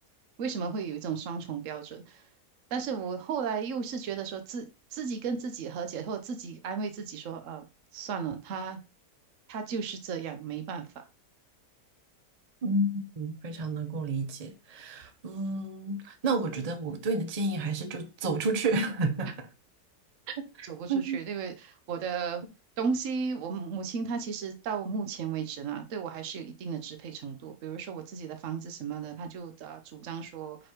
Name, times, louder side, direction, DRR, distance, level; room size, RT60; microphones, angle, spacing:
voice 1, 0.4-2.2 2.7-7.6 7.9-8.8 9.5-10.9 20.3-20.4 20.7-22.4 22.8-30.6, right 6 dB, 55° right, 1.2 m, -35 dB
voice 2, 12.6-19.5 20.4-21.2, right 2 dB, 35° right, 0.7 m, -31 dB
5.1 x 4.0 x 4.6 m
omnidirectional pair, 1.7 m